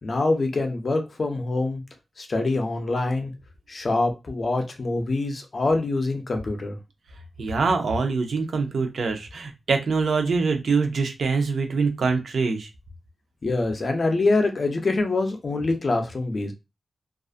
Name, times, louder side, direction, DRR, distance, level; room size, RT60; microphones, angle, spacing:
voice 1, 0.0-1.8 2.2-3.3 3.7-6.8 13.4-16.5, left 2 dB, 40° left, 0.5 m, -25 dB
voice 2, 7.4-12.7, right 4 dB, 70° right, 0.5 m, -24 dB
2.4 x 2.3 x 2.4 m
wide cardioid pair, 145°, 0 cm